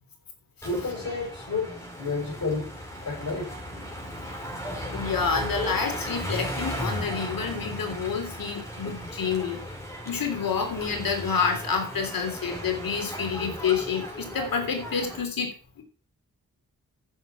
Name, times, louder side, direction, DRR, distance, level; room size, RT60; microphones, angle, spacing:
voice 1, 0.6-2.7 3.0-3.5, left 3 dB, 60° left, -2 dB, 6.8 m, -31 dB
sound 1, 0.6-15.2, equal, 10° left, 4.4 m, -36 dB
voice 2, 4.9-9.6 10.0-15.8, left 6 dB, 85° left, 5 dB, 3.4 m, -28 dB
11.0 x 7.2 x 6.0 m, 0.38 s
cardioid pair, 80°, 34 cm